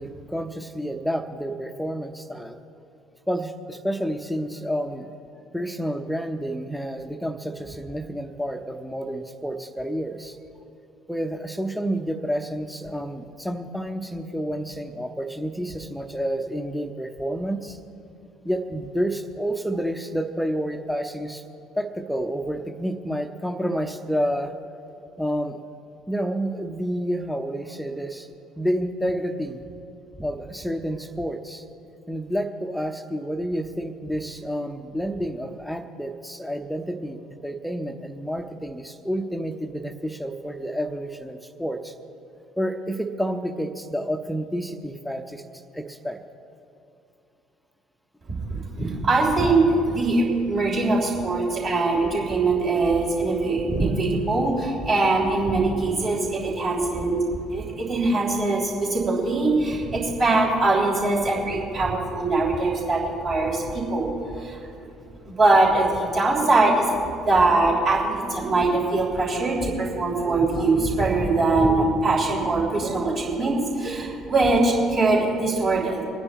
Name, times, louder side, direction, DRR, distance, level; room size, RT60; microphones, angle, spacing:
voice 1, 0.0-2.6 3.3-5.1 5.5-10.4 11.1-17.8 18.4-21.4 21.8-24.5 25.2-25.6 26.1-28.3 28.6-29.6 30.2-31.6 32.1-41.9 42.6-45.4 45.7-46.2 51.5-51.7, equal, ahead, 6 dB, 0.8 m, -29 dB
voice 2, 48.3-57.2 57.5-64.9 65.3-66.9 67.3-76.0, right 2 dB, 45° right, -4 dB, 3.5 m, -22 dB
26.5 x 9.7 x 3.1 m, 2.7 s
figure-of-eight pair, 55°, 0 cm